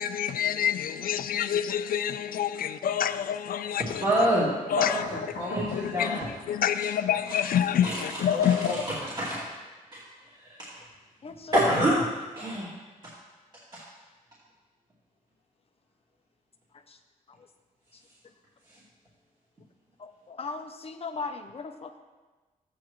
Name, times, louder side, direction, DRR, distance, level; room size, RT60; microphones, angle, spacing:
voice 1, 0.0-4.3 4.7-8.8, left 9 dB, 85° left, 0.5 m, -27 dB
voice 2, 4.0-4.5 4.8-6.3 7.8-8.0 8.3-8.8 9.2-9.5 9.9-10.0 10.4-10.8 11.5-11.9 12.4-12.7 13.7-13.8, right 1 dB, 30° right, 2.5 m, -27 dB
voice 3, 11.2-11.6 11.9-12.1 16.9-17.0 17.3-17.5 20.0-22.0, left 4 dB, 45° left, 0.6 m, -38 dB
14.0 x 8.6 x 3.1 m
wide cardioid pair, 130°, 14 cm